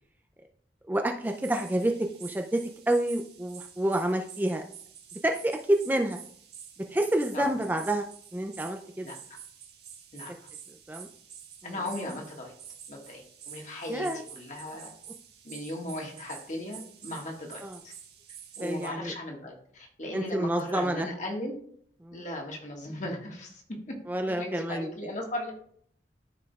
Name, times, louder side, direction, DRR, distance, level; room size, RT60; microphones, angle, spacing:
voice 1, 0.9-4.6 5.2-6.2 6.9-8.1 8.3-9.1 10.9-11.1 11.6-11.7 13.9-14.2 17.6-17.8 18.6-19.1 20.1-21.1 22.0-22.2 24.1-24.9, right 1 dB, 10° right, 4 dB, 0.4 m, -28 dB
sound 1, 1.2-18.9, right 8 dB, 65° right, 1.6 m, -48 dB
voice 2, 11.6-12.5 12.9-14.9 15.4-17.9 18.6-21.6 22.1-23.6 23.9-24.0 24.3-25.5, left 1 dB, 45° left, 0 dB, 1.6 m, -37 dB
13.0 x 4.9 x 2.3 m, 0.62 s
head